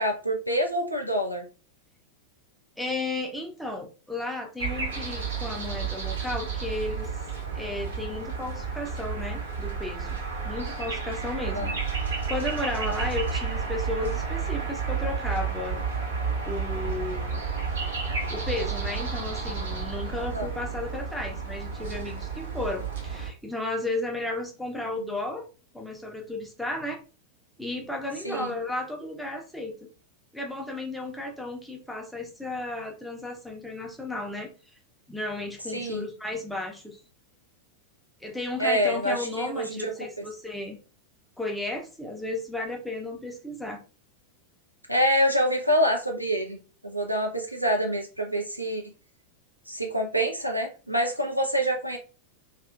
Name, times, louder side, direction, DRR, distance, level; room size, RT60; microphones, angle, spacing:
voice 1, 0.0-1.4 11.5-11.7 20.3-20.5 28.2-28.5 35.7-36.0 38.6-40.2 44.9-48.8 49.7-52.0, equal, 90° right, 2 dB, 0.5 m, -26 dB
voice 2, 2.8-7.1 7.5-10.2 10.4-11.7 12.0-15.8 16.5-17.4 18.3-25.5 25.7-27.0 27.6-29.8 30.3-34.5 35.1-37.0 38.2-40.8 41.4-43.8, left 2 dB, ahead, 1 dB, 0.6 m, -34 dB
sound 1, 4.6-23.3, right 5 dB, 65° right, 0.9 m, -31 dB
2.7 x 2.4 x 2.3 m, 0.34 s
figure-of-eight pair, 90°, 0 cm